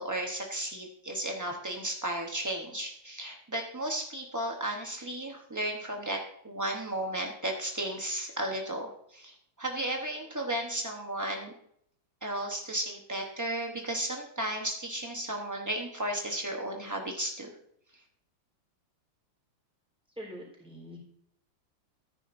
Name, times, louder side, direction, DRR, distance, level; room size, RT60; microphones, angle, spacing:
voice 1, 0.0-6.2 6.4-11.5 12.2-17.5, right 1 dB, 30° right, 1 dB, 0.3 m, -34 dB
voice 2, 20.2-21.0, equal, 5° right, -3 dB, 3.9 m, -44 dB
14.0 x 10.0 x 2.6 m, 0.70 s
omnidirectional pair, 2.2 m